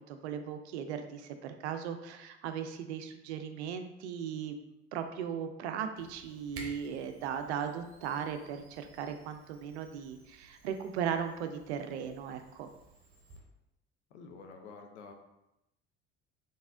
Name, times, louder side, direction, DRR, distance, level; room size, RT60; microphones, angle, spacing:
voice 1, 0.0-4.6 4.9-12.7, right 8 dB, 65° right, 8 dB, 0.5 m, -37 dB
Camera, 6.0-13.4, right 3 dB, 40° right, 1.0 m, -54 dB
voice 2, 14.1-15.1, left 4 dB, 70° left, 4 dB, 0.6 m, -49 dB
3.9 x 3.5 x 2.5 m, 0.91 s
figure-of-eight pair, 60°, 36 cm